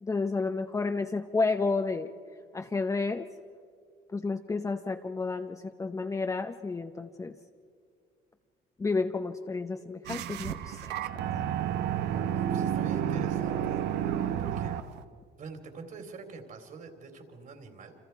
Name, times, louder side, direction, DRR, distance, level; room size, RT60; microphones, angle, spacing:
voice 1, 0.0-2.1 2.5-3.3 4.1-7.4 8.8-10.9, left 3 dB, 20° left, 6 dB, 0.7 m, -31 dB
sound 1, 10.0-15.0, right 10 dB, 85° right, 0.9 m, -31 dB
voice 2, 12.3-13.9 14.4-14.8 15.4-17.9, right 4 dB, 55° right, 5 dB, 3.5 m, -46 dB
29.0 x 26.5 x 4.6 m, 2.2 s
cardioid pair, 110°, 17 cm